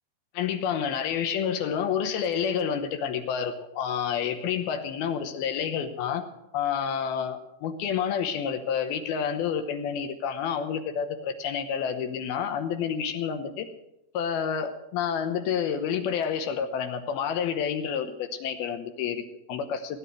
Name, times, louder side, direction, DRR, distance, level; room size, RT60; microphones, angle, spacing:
voice 1, 0.3-6.2 6.5-13.7 14.1-20.0, left 7 dB, 75° left, 7 dB, 2.8 m, -29 dB
17.0 x 9.7 x 6.3 m, 0.86 s
omnidirectional pair, 4.6 m